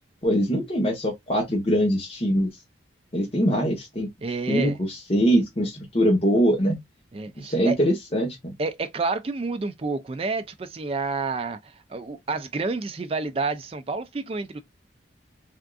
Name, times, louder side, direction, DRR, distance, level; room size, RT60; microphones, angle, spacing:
voice 1, 0.2-2.5 3.1-4.1 4.5-6.8 7.4-8.5, equal, 30° left, 0.9 m, -23 dB
voice 2, 4.2-4.8 7.1-7.8 8.6-14.6, right 3 dB, 30° right, 0.3 m, -29 dB
3.5 x 2.4 x 2.3 m
head